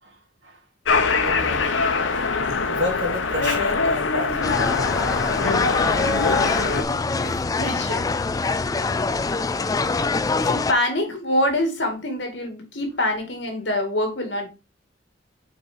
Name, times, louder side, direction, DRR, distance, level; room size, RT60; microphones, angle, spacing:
voice 1, 0.0-0.6 1.2-1.6 2.7-4.8, left 1 dB, 75° right, 2.5 m, -30 dB
sound 1, 0.8-6.8, left 4 dB, 85° left, 0.9 m, -23 dB
sound 2, 4.4-10.7, left 3 dB, 20° left, 0.3 m, -24 dB
voice 2, 6.3-8.1 10.4-14.5, left 1 dB, 65° left, 2.1 m, -26 dB
5.9 x 4.5 x 4.4 m
head